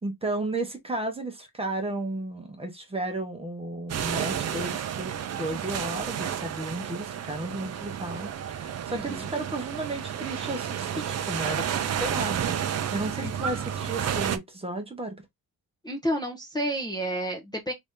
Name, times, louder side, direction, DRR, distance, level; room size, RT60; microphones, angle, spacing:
voice 1, 0.0-12.6 12.9-15.2, right 2 dB, 15° right, 0.9 m, -33 dB
sound 1, 3.9-14.4, right 9 dB, 45° right, 0.5 m, -31 dB
voice 2, 8.9-9.3 13.2-13.7 15.8-17.7, equal, 10° left, 0.7 m, -31 dB
3.4 x 2.7 x 3.5 m
wide cardioid pair, 155°, 37 cm